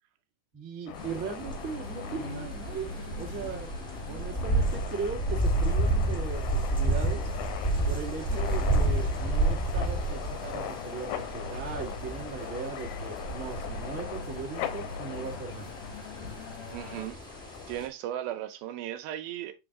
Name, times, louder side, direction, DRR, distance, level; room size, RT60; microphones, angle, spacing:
voice 1, 0.5-3.7 4.1-7.3 7.9-15.7, right 5 dB, 50° right, 0.9 m, -38 dB
sound 1, 0.9-17.8, left 11 dB, 85° left, 2.6 m, -41 dB
sound 2, 0.9-17.1, left 3 dB, 60° left, 1.8 m, -43 dB
sound 3, 0.9-17.9, right 2 dB, 5° left, 0.4 m, -31 dB
voice 2, 8.3-8.7 16.7-17.2 17.7-19.5, right 12 dB, 80° right, 2.4 m, -37 dB
7.6 x 3.9 x 3.6 m
omnidirectional pair, 4.5 m